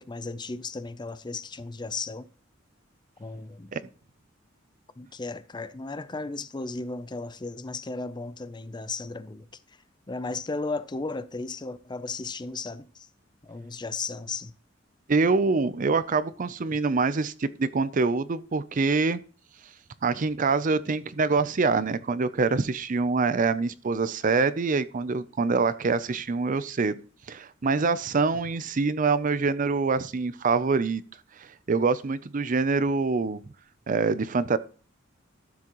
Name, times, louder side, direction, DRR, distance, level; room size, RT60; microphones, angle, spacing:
voice 1, 0.0-2.3 3.2-3.7 5.0-9.5 10.1-13.1 13.4-14.5, left 3 dB, 20° left, 0.5 m, -35 dB
voice 2, 15.1-19.2 20.0-27.0 27.3-31.0 31.7-33.4 33.9-34.6, right 4 dB, 40° right, 0.5 m, -25 dB
13.0 x 7.3 x 3.0 m
head